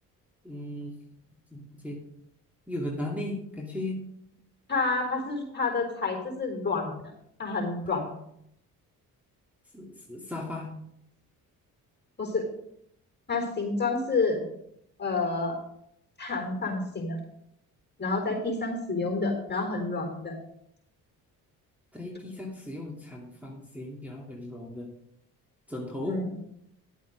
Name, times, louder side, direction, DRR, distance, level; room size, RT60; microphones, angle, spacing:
voice 1, 0.4-1.0 1.5-2.0 2.7-4.0 7.9-8.1 9.7-10.7 21.9-24.9 25.7-26.2, left 1 dB, 5° right, -3 dB, 2.5 m, -36 dB
voice 2, 4.7-7.0 7.4-8.0 12.2-12.4 13.3-14.4 15.0-15.6 16.2-17.2 18.0-20.4 26.0-26.5, left 3 dB, 25° left, 3 dB, 4.0 m, -29 dB
11.0 x 8.4 x 5.1 m, 0.74 s
supercardioid pair, 65°, 38 cm